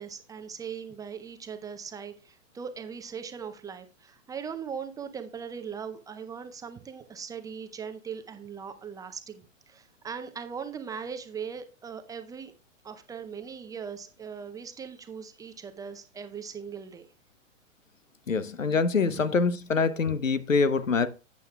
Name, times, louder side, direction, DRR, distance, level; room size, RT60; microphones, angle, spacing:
voice 1, 0.0-12.5 12.8-17.1 19.1-19.2, right 6 dB, 10° right, 0.5 m, -39 dB
voice 2, 18.3-21.1, left 4 dB, 90° left, 0.8 m, -25 dB
11.5 x 8.3 x 2.3 m
figure-of-eight pair, 110°, 38 cm